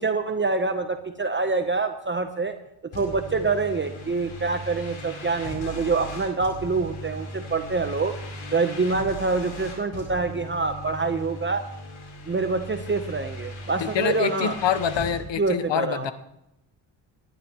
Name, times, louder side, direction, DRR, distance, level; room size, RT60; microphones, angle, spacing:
voice 1, 0.0-2.5 2.9-8.1 8.5-11.6 12.3-14.5 15.4-16.1, right 4 dB, 25° right, 7 dB, 1.0 m, -26 dB
sound 1, 2.9-15.2, equal, 80° left, 4.3 m, -38 dB
voice 2, 13.8-16.1, left 8 dB, 65° left, 10 dB, 1.1 m, -25 dB
19.5 x 11.0 x 3.1 m, 0.83 s
cardioid pair, 70°, 48 cm